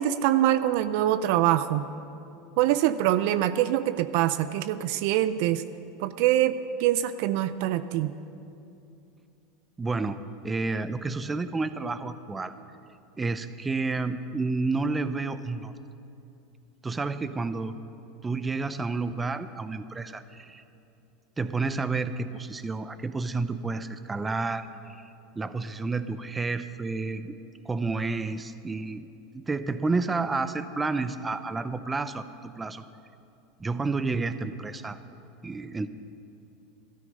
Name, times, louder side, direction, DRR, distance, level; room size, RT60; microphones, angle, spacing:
voice 1, 0.0-1.9 2.6-5.6 6.0-8.1, right 12 dB, 65° right, 13 dB, 0.4 m, -24 dB
voice 2, 9.8-12.5 13.2-15.7 16.8-17.7 18.2-20.6 21.4-27.4 27.6-29.1 29.3-32.8 33.6-35.0 35.4-35.9, right 3 dB, 15° right, 12 dB, 0.6 m, -30 dB
13.0 x 13.0 x 5.3 m, 2.7 s
hypercardioid pair, 100°, 0 cm